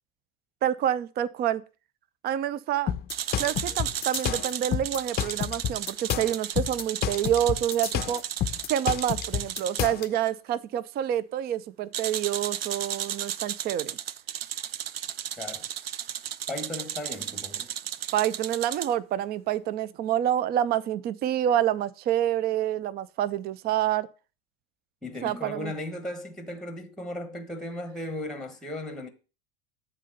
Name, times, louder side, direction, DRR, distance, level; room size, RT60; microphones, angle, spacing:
voice 1, 0.6-1.6 2.2-2.9 3.4-8.2 8.7-14.0 18.1-24.1 25.2-25.7, right 11 dB, 35° right, 0.5 m, -27 dB
sound 1, 2.9-10.1, left 10 dB, 35° left, 0.6 m, -30 dB
sound 2, 3.1-9.9 11.9-18.9, right 10 dB, 85° right, 0.4 m, -34 dB
voice 2, 15.4-15.7 16.5-17.7 25.0-29.1, left 1 dB, ahead, 1.1 m, -36 dB
7.4 x 3.9 x 6.6 m
hypercardioid pair, 85°, 29 cm